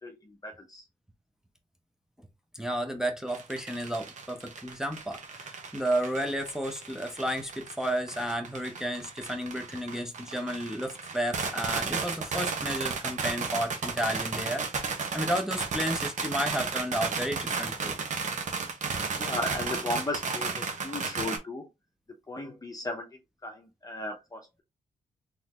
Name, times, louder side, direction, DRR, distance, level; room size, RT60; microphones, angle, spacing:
voice 1, 0.0-0.9 19.2-21.7 22.3-24.6, left 2 dB, 25° left, 0.8 m, -36 dB
voice 2, 2.5-17.9, equal, 5° right, 0.8 m, -32 dB
sound 1, 3.3-21.4, right 5 dB, 65° right, 1.0 m, -34 dB
3.9 x 3.1 x 3.0 m
cardioid pair, 85°, 14 cm